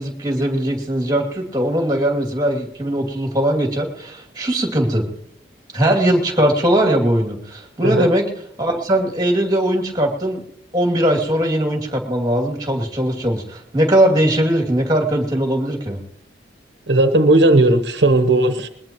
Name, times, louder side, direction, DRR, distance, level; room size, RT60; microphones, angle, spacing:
voice 1, 0.0-5.0 5.7-8.2 8.6-10.4 10.7-16.0, right 1 dB, 20° right, 3 dB, 2.6 m, -19 dB
voice 2, 16.9-18.7, right 2 dB, 70° right, 8 dB, 1.1 m, -15 dB
21.0 x 21.0 x 3.1 m, 0.76 s
head